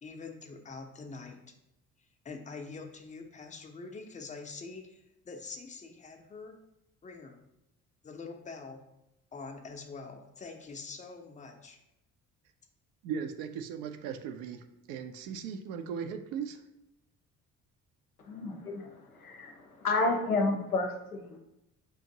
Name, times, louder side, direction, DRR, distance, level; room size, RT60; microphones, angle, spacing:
voice 1, 0.0-1.4 2.2-6.6 7.0-7.4 8.0-8.8 9.3-11.8, left 4 dB, 15° left, 4 dB, 0.5 m, -45 dB
voice 2, 13.0-16.6, right 7 dB, 55° right, 6 dB, 0.5 m, -38 dB
voice 3, 18.2-21.4, left 3 dB, 85° left, 3 dB, 0.6 m, -31 dB
5.9 x 2.5 x 2.7 m, 0.87 s
figure-of-eight pair, 50°, 43 cm